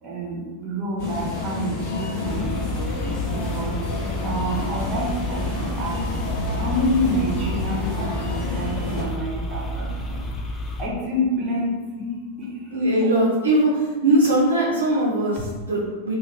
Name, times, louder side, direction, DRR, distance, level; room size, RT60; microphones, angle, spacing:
voice 1, 0.0-2.9 3.3-3.8 4.2-6.0 6.6-10.2 10.8-12.5, equal, 30° right, -3 dB, 0.8 m, -28 dB
sound 1, 1.0-9.0, left 3 dB, 50° left, 1.0 m, -29 dB
sound 2, 2.3-10.9, left 1 dB, 15° left, 0.4 m, -30 dB
voice 2, 12.7-16.1, right 1 dB, 70° right, -3 dB, 0.5 m, -20 dB
2.4 x 2.4 x 3.1 m, 1.3 s
figure-of-eight pair, 90°, 0 cm